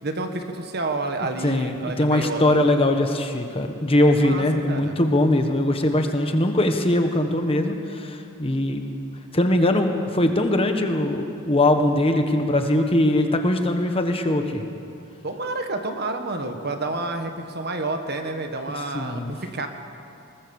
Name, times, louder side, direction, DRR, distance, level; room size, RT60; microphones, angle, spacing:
voice 1, 0.0-2.6 4.2-5.0 15.2-19.7, right 2 dB, 50° right, 6 dB, 1.5 m, -29 dB
voice 2, 1.4-8.8 9.3-14.6 18.9-19.3, left 1 dB, 25° left, 5 dB, 1.4 m, -21 dB
21.0 x 19.5 x 7.1 m, 2.5 s
head